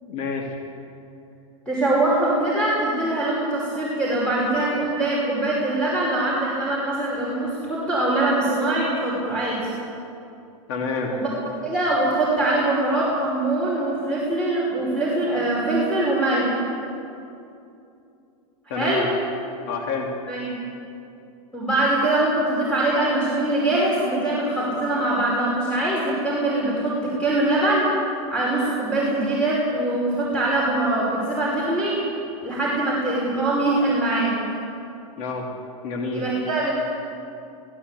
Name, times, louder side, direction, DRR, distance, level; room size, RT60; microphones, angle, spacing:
voice 1, 0.1-0.6 10.7-11.1 18.7-19.1 19.7-20.1 35.2-35.4 35.8-36.2, left 4 dB, 60° left, 0 dB, 3.2 m, -28 dB
voice 2, 1.7-9.6 11.1-11.3 11.6-16.6 18.7-19.1 20.3-20.5 21.5-27.9 28.3-32.0 32.4-34.4 36.1-36.7, right 2 dB, 5° left, -6 dB, 5.5 m, -23 dB
21.5 x 17.0 x 8.4 m, 2.7 s
supercardioid pair, 135°, 18 cm